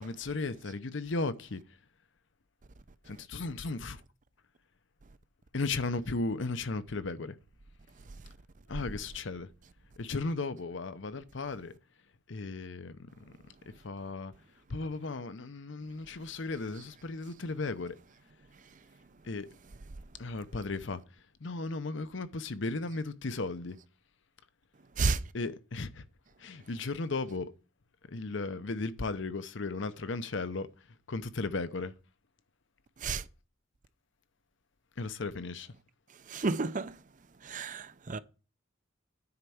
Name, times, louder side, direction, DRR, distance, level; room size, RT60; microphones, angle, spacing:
voice 1, 0.0-1.6 3.1-4.0 5.5-7.4 8.7-9.5 10.0-11.7 12.3-13.4 13.7-14.3 14.7-18.0 19.2-19.5 20.2-21.0 21.4-23.8 25.3-26.1 26.4-27.5 28.1-30.7 31.1-31.9 35.0-35.7, left 3 dB, 65° left, 0.7 m, -35 dB
voice 2, 36.3-36.9 37.4-38.2, right 4 dB, 40° right, 0.6 m, -31 dB
9.7 x 4.4 x 7.0 m
head